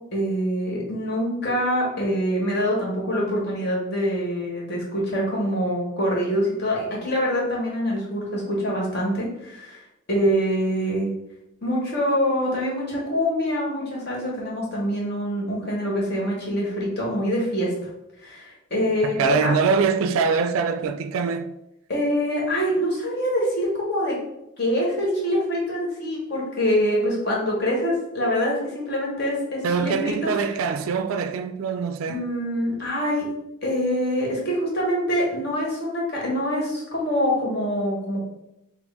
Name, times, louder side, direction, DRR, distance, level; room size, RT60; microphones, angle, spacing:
voice 1, 0.1-9.8 10.1-11.1 11.6-17.7 18.2-19.5 21.9-24.2 24.6-30.5 32.1-33.3 33.6-38.2, equal, 50° left, 1.4 m, -25 dB
voice 2, 19.0-21.5 29.6-32.2, right 5 dB, 85° right, 0.3 m, -23 dB
6.1 x 2.1 x 3.4 m
head